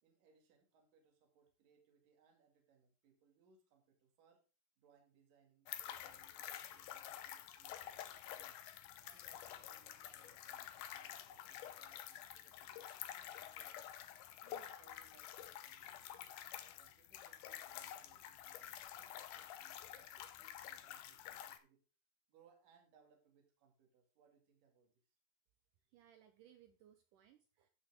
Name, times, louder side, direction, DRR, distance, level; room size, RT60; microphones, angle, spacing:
voice 1, 0.0-4.4 4.8-8.6 9.0-13.9 14.4-16.1 16.6-21.8 22.3-24.9, right 6 dB, 55° right, 1 dB, 3.6 m, -71 dB
sound 1, 5.7-21.6, left 11 dB, 85° left, 1.8 m, -50 dB
voice 2, 25.9-27.7, right 10 dB, 90° right, 7 dB, 1.8 m, -65 dB
15.0 x 6.0 x 3.6 m, 0.34 s
omnidirectional pair, 4.8 m